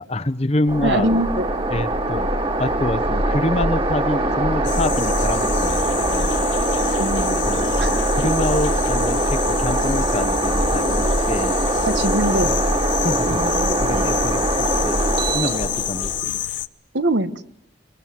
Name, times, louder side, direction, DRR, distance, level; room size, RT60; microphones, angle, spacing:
voice 1, 0.0-1.1 1.7-2.3 2.6-6.3 7.4-11.6 12.4-12.6 13.0-13.5 13.8-14.5 14.8-15.0 15.3-16.5, left 1 dB, 35° left, 13 dB, 0.9 m, -26 dB
sound 1, 0.7-16.2, right 1 dB, 30° right, 2.4 m, -22 dB
voice 2, 0.8-1.5 7.0-7.5 7.8-8.0 11.8-12.5 13.3-14.3 16.9-17.5, right 1 dB, 70° right, 11 dB, 1.4 m, -23 dB
sound 2, 4.6-16.7, left 11 dB, 85° left, 1.0 m, -29 dB
23.0 x 23.0 x 7.6 m, 0.77 s
head